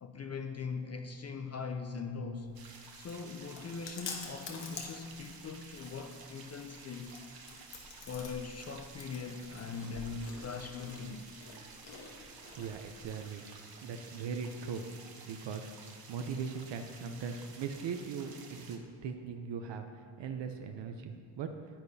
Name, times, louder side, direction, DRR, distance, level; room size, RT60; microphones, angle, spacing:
voice 1, 0.0-2.5 2.9-7.1 8.1-11.3, left 5 dB, 35° left, 6 dB, 0.4 m, -41 dB
Chewing mastication, 2.4-13.0, left 4 dB, 80° left, 1.4 m, -49 dB
sound 1, 2.5-18.8, right 4 dB, 55° right, 1.0 m, -53 dB
voice 2, 12.3-13.4 13.8-14.9 15.2-21.5, right 6 dB, 75° right, 6 dB, 0.6 m, -40 dB
10.0 x 10.0 x 2.7 m, 2.1 s
wide cardioid pair, 140°, 44 cm